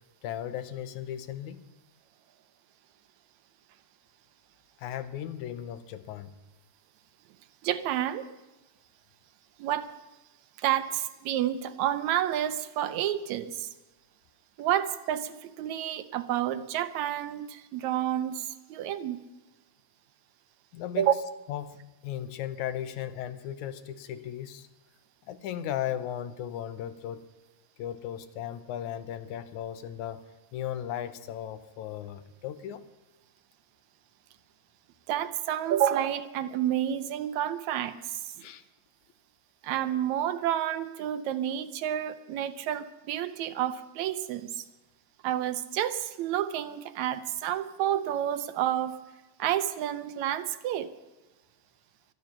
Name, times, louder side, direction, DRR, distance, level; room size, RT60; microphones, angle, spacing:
voice 1, 0.2-1.6 4.8-6.3 20.7-21.1 21.5-24.7 25.3-27.3 27.8-30.2 30.5-32.8 38.4-38.6, left 10 dB, 85° left, 12 dB, 2.2 m, -36 dB
voice 2, 7.6-8.3 9.6-9.9 10.6-13.7 14.6-19.2 21.0-21.1 35.1-38.5 39.6-44.7 45.2-49.0 49.4-50.9, right 11 dB, 80° right, 11 dB, 2.0 m, -29 dB
24.0 x 9.7 x 5.8 m, 1.1 s
omnidirectional pair, 3.3 m